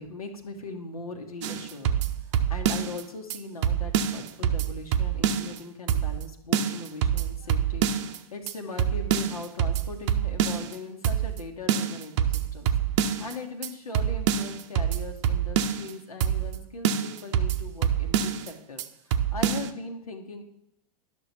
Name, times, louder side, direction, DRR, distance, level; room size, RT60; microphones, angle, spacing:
voice 1, 0.0-1.9 2.2-20.4, left 3 dB, 80° left, 2 dB, 1.4 m, -40 dB
sound 1, 1.4-3.0 3.3-3.4 3.6-5.6 5.9-6.3 6.5-8.2 8.5-8.6 8.8-10.8 11.0-11.4 11.7-13.3 13.6-13.7 13.9-15.9 16.2-16.6 16.8-18.5 18.8-18.9 19.1-19.7, right 9 dB, 55° right, 0.7 m, -26 dB
11.0 x 6.5 x 4.3 m, 0.79 s
figure-of-eight pair, 95°, 18 cm